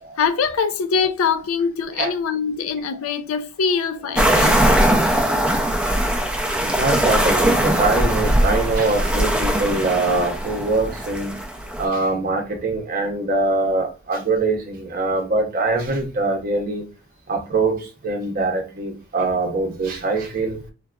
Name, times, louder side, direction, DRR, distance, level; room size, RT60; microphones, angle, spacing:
voice 1, 0.2-4.8, left 6 dB, 75° left, 0.4 m, -23 dB
sound 1, 4.2-11.8, right 1 dB, 5° right, 0.4 m, -20 dB
voice 2, 6.8-11.3 11.8-16.8 17.3-20.6, right 3 dB, 45° right, 0.7 m, -23 dB
3.8 x 2.3 x 2.2 m
head